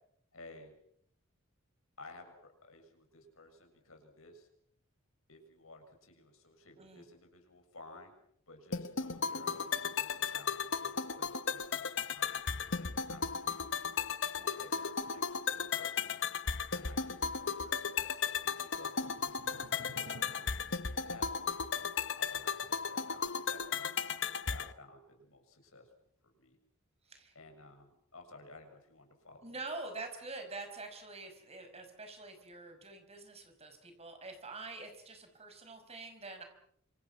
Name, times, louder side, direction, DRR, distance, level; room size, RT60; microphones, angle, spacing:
voice 1, 0.3-0.7 2.0-4.5 5.3-8.1 8.5-13.8 14.3-16.2 16.7-21.9 22.2-23.9 24.4-25.9 26.2-26.6 27.4-29.5, left 2 dB, 80° left, 4 dB, 7.1 m, -55 dB
sound 1, 8.7-24.7, left 6 dB, 60° left, 1.0 m, -35 dB
sound 2, 9.1-10.8 11.1-11.2 18.5-21.2, right 1 dB, 75° right, 3.4 m, -56 dB
voice 2, 27.0-27.3 29.4-36.4, right 3 dB, 30° right, 6 dB, 5.6 m, -46 dB
27.5 x 27.0 x 6.2 m, 0.70 s
head